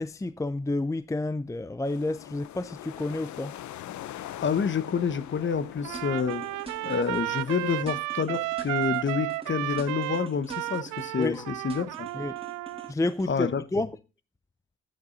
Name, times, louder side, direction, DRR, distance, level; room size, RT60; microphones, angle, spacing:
voice 1, 0.0-3.5 11.2-11.5 12.1-12.4 12.9-13.9, left 2 dB, 10° left, 0.6 m, -30 dB
sound 1, 1.8-7.8, left 12 dB, 70° left, 0.8 m, -43 dB
voice 2, 4.4-6.5 6.8-12.1 13.3-13.8, left 6 dB, 40° left, 1.2 m, -28 dB
Trumpet, 5.8-12.9, right 19 dB, 85° right, 0.5 m, -33 dB
sound 2, 5.9-7.6 7.9-9.5 9.8-11.4 11.7-13.3, right 3 dB, 20° right, 3.2 m, -45 dB
11.0 x 9.0 x 4.0 m
cardioid pair, 90°, 30 cm